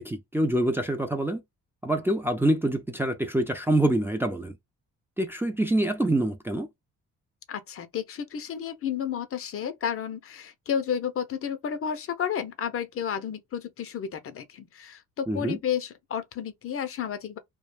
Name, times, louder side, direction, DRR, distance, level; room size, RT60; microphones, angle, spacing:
voice 1, 0.0-1.4 1.8-4.5 5.2-6.7 15.3-15.6, right 1 dB, 10° right, 0.4 m, -25 dB
voice 2, 7.5-17.4, left 8 dB, 50° left, 0.5 m, -32 dB
2.3 x 2.1 x 3.2 m
cardioid pair, 90°, 30 cm